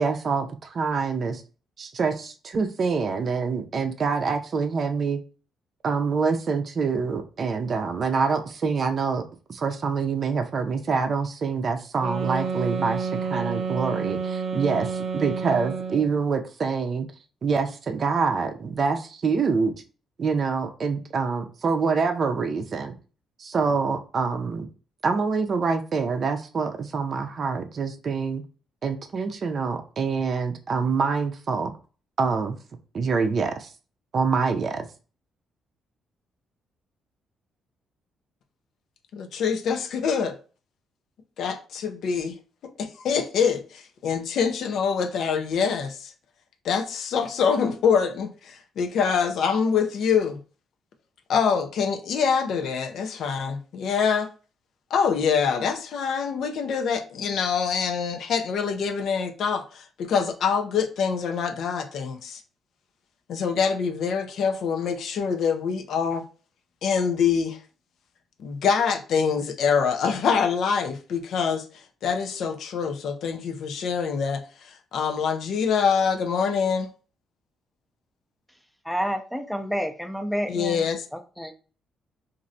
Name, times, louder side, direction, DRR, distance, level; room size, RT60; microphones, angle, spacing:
voice 1, 0.0-1.4 1.8-5.2 5.8-9.2 9.5-17.1 17.4-19.7 20.2-22.9 23.4-24.7 25.0-28.4 28.8-31.7 32.2-32.6 32.9-33.7 34.1-34.9, right 5 dB, 50° right, 0.5 m, -26 dB
sound 1, 12.0-16.2, right 5 dB, 85° right, 0.7 m, -29 dB
voice 2, 39.1-40.4 41.4-42.4 42.6-46.1 46.6-50.4 51.3-54.3 54.9-62.4 63.3-66.2 66.8-67.6 68.4-71.6 72.0-76.9 80.5-81.0, left 6 dB, 70° left, 0.4 m, -25 dB
voice 3, 78.8-80.8 81.1-81.6, equal, ahead, 0.5 m, -29 dB
3.1 x 2.5 x 2.6 m
cardioid pair, 90°, 0 cm